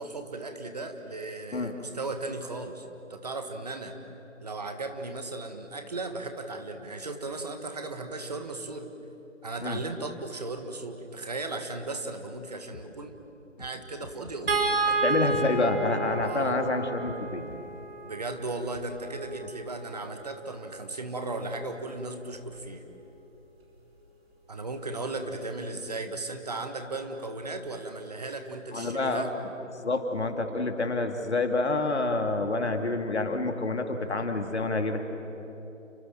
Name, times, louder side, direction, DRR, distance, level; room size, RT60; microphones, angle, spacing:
voice 1, 0.0-2.8 3.1-4.0 4.4-8.9 9.4-13.2 13.6-15.3 16.2-16.6 18.0-22.8 24.5-29.3, right 2 dB, 30° right, 6 dB, 1.6 m, -36 dB
sound 1, 12.7-12.9 13.6-13.7 14.0-14.6 15.3-15.4 16.2-16.3 17.0-17.2 17.5-17.6, left 3 dB, 35° left, 4.6 m, -46 dB
sound 2, 14.5-20.8 22.3-22.5 22.9-23.0, right 3 dB, 50° right, 4.7 m, -32 dB
voice 2, 15.0-17.4 28.7-29.3 29.8-35.0, left 2 dB, 55° left, 5 dB, 2.7 m, -28 dB
30.0 x 23.5 x 7.5 m, 3.0 s
figure-of-eight pair, 160°, 39 cm